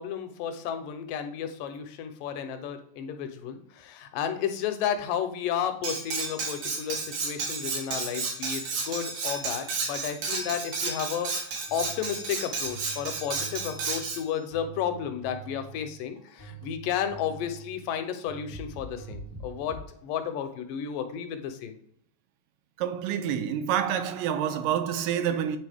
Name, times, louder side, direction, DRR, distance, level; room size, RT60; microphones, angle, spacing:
voice 1, 0.0-11.3 11.7-21.8, left 8 dB, 80° left, 2.2 m, -32 dB
Cutlery silverware, 5.8-14.2, right 4 dB, 65° right, 2.8 m, -32 dB
sound 1, 11.7-19.8, right 4 dB, 25° right, 0.7 m, -45 dB
voice 2, 22.8-25.6, right 9 dB, 85° right, 2.3 m, -27 dB
9.0 x 4.0 x 3.4 m
omnidirectional pair, 4.0 m